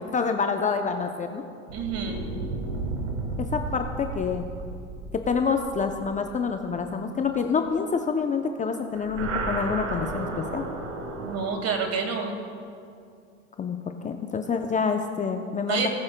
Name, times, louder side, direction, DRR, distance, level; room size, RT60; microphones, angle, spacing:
voice 1, 0.0-1.4 3.4-4.5 5.1-10.6 13.6-15.9, left 5 dB, 20° left, 5 dB, 0.6 m, -27 dB
voice 2, 1.7-2.3 11.2-12.3 15.6-15.9, right 5 dB, 45° right, 4 dB, 1.9 m, -28 dB
sound 1, 1.7-7.3 8.9-11.5, right 3 dB, 80° right, 1.5 m, -33 dB
19.0 x 8.6 x 2.2 m, 2.4 s
hypercardioid pair, 90°, 36 cm